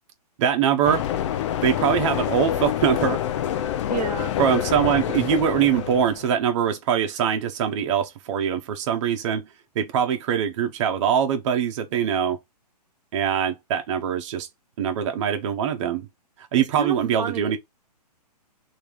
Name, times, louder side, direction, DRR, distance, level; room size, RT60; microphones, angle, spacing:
voice 1, 0.4-1.0 1.6-3.2 4.4-9.4 9.7-12.4 13.1-14.5 14.8-16.1 16.5-17.6, right 8 dB, 45° right, 1.0 m, -23 dB
sound 1, 0.8-6.4, left 10 dB, 45° left, 0.7 m, -27 dB
voice 2, 3.9-4.3 16.8-17.6, right 6 dB, 75° right, 1.2 m, -29 dB
3.5 x 3.1 x 4.5 m
hypercardioid pair, 135°, 21 cm